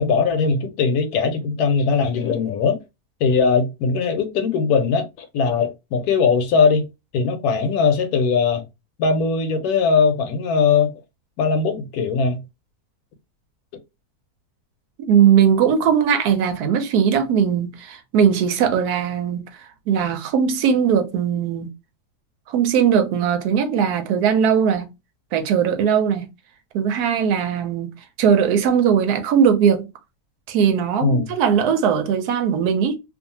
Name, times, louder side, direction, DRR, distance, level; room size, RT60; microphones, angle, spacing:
voice 1, 0.0-2.8 3.2-6.9 7.1-8.6 9.0-10.9 11.4-12.4 31.0-31.3, left 5 dB, 75° left, 1.1 m, -20 dB
voice 2, 15.1-21.7 22.5-24.9 25.3-26.3 26.7-27.9 28.2-29.9 30.5-33.0, right 7 dB, 80° right, 1.1 m, -19 dB
2.6 x 2.4 x 2.7 m
omnidirectional pair, 1.7 m